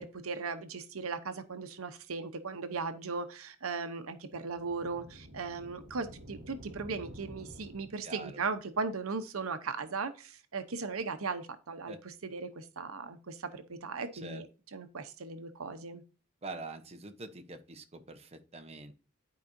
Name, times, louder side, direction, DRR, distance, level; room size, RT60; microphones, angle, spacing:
voice 1, 0.0-14.5 14.7-16.0, right 4 dB, 85° right, 9 dB, 0.9 m, -38 dB
sound 1, 4.5-8.3, equal, 55° right, 1.7 m, -50 dB
voice 2, 8.0-8.4 11.9-12.0 14.1-14.4 16.4-18.9, right 3 dB, 30° right, 6 dB, 0.9 m, -44 dB
11.5 x 4.8 x 2.7 m, 0.36 s
head